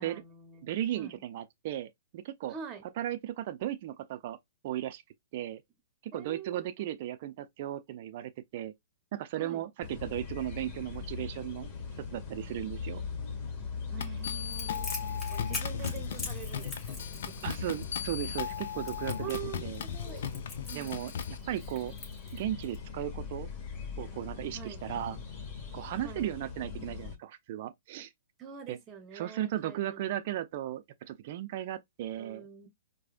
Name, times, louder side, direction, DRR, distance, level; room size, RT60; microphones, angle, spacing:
voice 1, 0.0-1.2 2.5-2.8 6.1-7.0 9.4-9.7 13.9-17.8 19.2-20.2 20.7-21.0 24.5-24.8 26.0-26.3 28.4-30.4 32.1-32.7, right 8 dB, 25° right, 1.0 m, -46 dB
voice 2, 0.6-2.5 3.0-4.4 4.6-5.0 5.3-5.6 6.1-8.7 9.1-11.7 12.0-13.0 15.8-15.9 17.4-19.8 20.7-21.1 21.5-21.9 22.3-23.5 24.0-25.2 25.7-28.1 28.7-28.8 29.1-32.4, right 12 dB, 50° right, 0.5 m, -36 dB
sound 1, 9.8-27.2, left 5 dB, 35° left, 2.1 m, -40 dB
sound 2, 14.0-21.4, left 8 dB, 60° left, 0.5 m, -38 dB
Crackle, 14.5-22.8, left 3 dB, 15° left, 2.7 m, -43 dB
4.8 x 2.3 x 2.5 m
hypercardioid pair, 120°, 0 cm